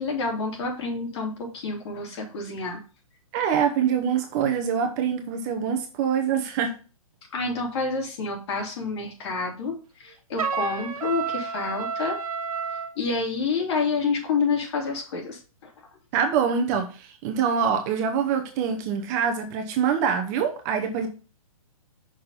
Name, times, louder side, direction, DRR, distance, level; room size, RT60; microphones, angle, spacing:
voice 1, 0.0-2.8 7.3-12.2 13.0-15.7, left 4 dB, 50° left, 0 dB, 2.9 m, -28 dB
voice 2, 3.3-6.7 16.1-21.1, right 7 dB, 30° right, 5 dB, 0.8 m, -25 dB
Trumpet, 10.4-12.9, right 6 dB, 75° right, 1.2 m, -30 dB
6.1 x 3.7 x 5.4 m, 0.36 s
hypercardioid pair, 145°, 18 cm